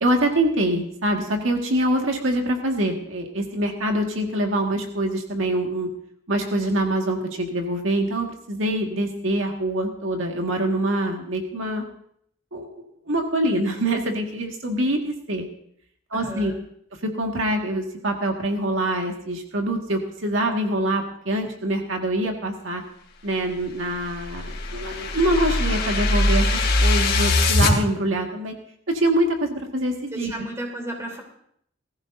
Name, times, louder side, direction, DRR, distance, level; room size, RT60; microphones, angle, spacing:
voice 1, 0.0-5.9 6.3-11.9 12.5-15.5 16.1-16.5 17.0-22.8 23.2-28.5 28.9-30.5, right 1 dB, 80° right, 2 dB, 1.8 m, -25 dB
voice 2, 16.1-16.6 30.1-31.2, right 1 dB, 15° right, 1 dB, 3.5 m, -33 dB
sound 1, 23.7-27.7, left 2 dB, 55° left, 3.0 m, -21 dB
20.5 x 14.5 x 2.7 m, 0.68 s
head